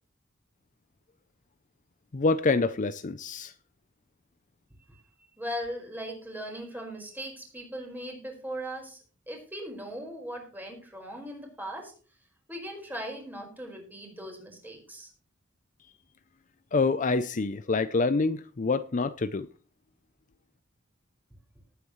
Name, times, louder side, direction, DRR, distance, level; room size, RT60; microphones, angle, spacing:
voice 1, 2.1-3.5 16.7-19.5, left 3 dB, 40° left, 0.5 m, -26 dB
voice 2, 5.4-9.0 9.3-11.9 12.5-15.1, equal, 10° right, 4.8 m, -39 dB
19.0 x 9.2 x 3.2 m
head